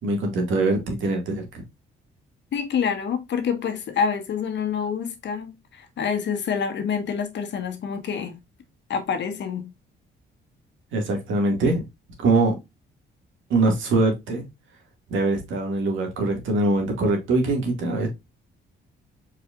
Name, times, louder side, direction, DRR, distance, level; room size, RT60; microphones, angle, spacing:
voice 1, 0.0-1.6 10.9-11.8 12.2-12.6 13.5-14.4 15.1-18.1, right 2 dB, 75° right, 2.1 m, -23 dB
voice 2, 2.5-8.4 8.9-9.7, left 6 dB, 65° left, 1.3 m, -27 dB
4.7 x 4.5 x 2.4 m
cardioid pair, 90°, 20 cm